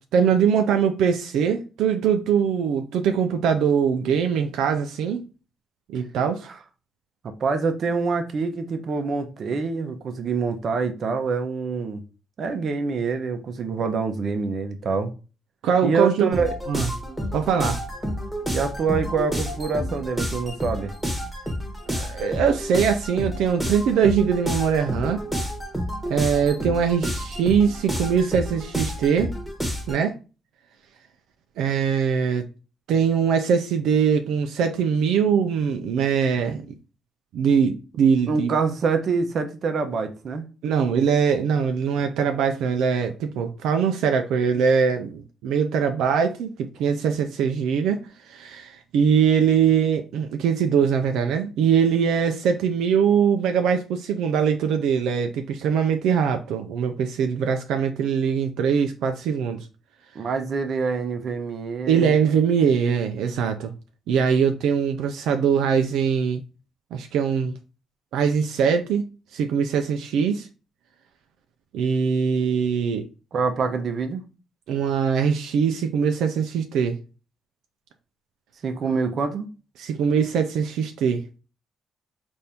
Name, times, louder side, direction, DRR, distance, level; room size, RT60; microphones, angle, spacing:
voice 1, 0.1-5.2 5.9-6.5 15.6-16.4 16.7-16.9 17.3-17.8 21.9-25.2 26.1-29.3 29.9-30.1 31.6-32.4 32.9-36.6 37.3-38.5 40.6-48.0 48.3-59.6 61.9-63.7 64.1-66.4 66.9-67.5 68.1-69.0 69.3-70.5 71.7-73.1 74.7-77.0 79.8-81.2, right 7 dB, 85° right, 0.5 m, -22 dB
voice 2, 7.2-12.0 12.4-15.1 15.8-16.5 18.5-20.9 38.3-40.4 60.1-62.2 73.3-74.3 78.6-79.5, right 4 dB, 55° right, 0.7 m, -26 dB
sound 1, 16.3-30.0, equal, ahead, 1.2 m, -30 dB
4.2 x 2.7 x 3.4 m
cardioid pair, 90°, 0 cm